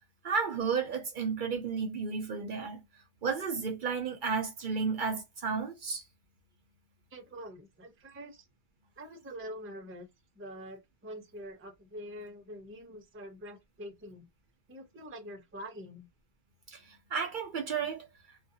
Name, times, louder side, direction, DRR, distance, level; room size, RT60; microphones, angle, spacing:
voice 1, 0.2-2.8 3.2-6.0 16.7-18.1, right 5 dB, 60° right, 0.7 m, -32 dB
voice 2, 7.1-8.4 9.0-10.1 10.4-14.3 14.7-16.1, equal, 20° right, 0.4 m, -45 dB
2.3 x 2.2 x 2.7 m
omnidirectional pair, 1.1 m